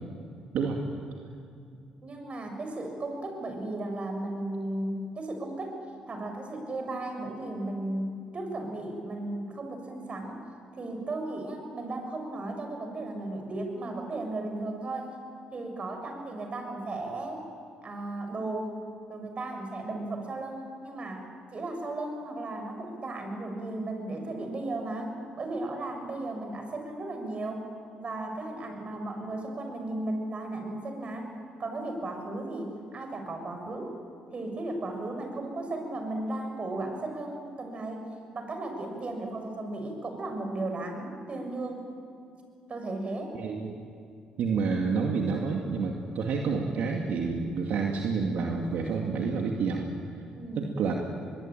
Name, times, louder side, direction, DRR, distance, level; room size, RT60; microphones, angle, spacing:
voice 1, 2.0-10.4 10.7-15.1 15.5-17.4 17.8-18.8 19.1-27.7 28.0-31.3 31.6-33.9 34.3-41.9 42.7-43.4 50.4-50.7, right 2 dB, 45° right, 4 dB, 7.0 m, -35 dB
voice 2, 43.3-43.8 44.4-49.9 50.6-50.9, right 5 dB, 70° right, 1 dB, 2.3 m, -29 dB
24.5 x 21.5 x 9.0 m, 2.5 s
supercardioid pair, 60°, 3 cm